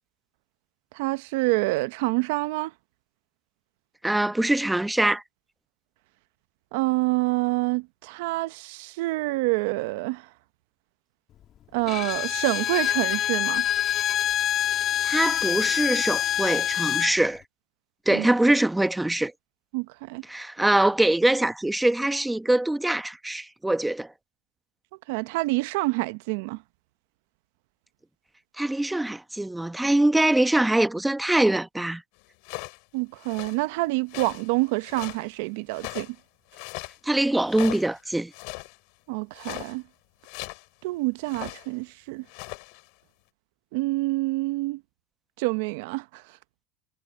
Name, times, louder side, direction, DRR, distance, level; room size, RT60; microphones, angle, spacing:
voice 1, 0.9-2.7 6.7-10.3 11.7-13.6 18.1-18.3 19.7-20.2 25.1-26.6 32.9-36.2 39.1-39.8 40.8-42.2 43.7-44.8 45.4-46.2, right 23 dB, 75° right, 0.7 m, -27 dB
voice 2, 4.0-5.2 15.0-17.4 18.1-19.3 20.3-24.1 28.6-32.0 37.0-38.3, right 1 dB, 5° right, 1.0 m, -23 dB
Bowed string instrument, 11.9-17.2, left 11 dB, 45° left, 2.0 m, -25 dB
sound 1, 32.4-32.8 33.2-33.6 34.1-35.3 35.7-36.2 36.5-37.0 37.5-38.0 38.3-38.8 39.3-39.8 40.2-40.7 41.3-41.7 42.2-42.8, left 36 dB, 70° left, 6.6 m, -39 dB
supercardioid pair, 100°, 0 cm